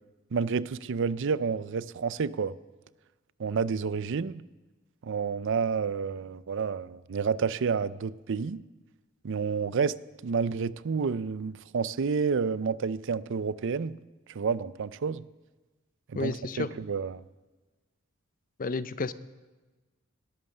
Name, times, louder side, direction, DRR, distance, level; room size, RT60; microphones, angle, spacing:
voice 1, 0.3-2.5 3.4-4.4 5.0-8.6 9.2-9.9 10.2-14.0 14.3-15.2 16.1-17.2, right 5 dB, 60° right, 17 dB, 0.5 m, -29 dB
voice 2, 16.1-16.7 18.6-19.1, left 3 dB, 40° left, 15 dB, 0.6 m, -31 dB
18.5 x 11.0 x 6.6 m, 1.2 s
head